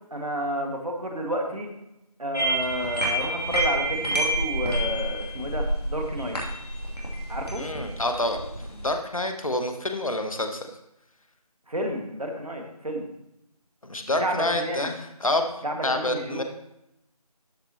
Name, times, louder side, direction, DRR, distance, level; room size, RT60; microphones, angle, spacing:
voice 1, 0.1-1.7 2.2-6.4 7.3-7.7 11.7-13.1 14.2-14.9 15.6-16.4, equal, 65° right, 2 dB, 1.9 m, -30 dB
sound 1, 2.3-8.9, right 1 dB, 75° left, 2.7 m, -28 dB
voice 2, 7.6-8.4 8.7-10.7 13.8-15.5 15.8-16.4, left 1 dB, 60° left, 6 dB, 1.1 m, -27 dB
12.5 x 5.8 x 3.0 m, 0.85 s
figure-of-eight pair, 170°, 20 cm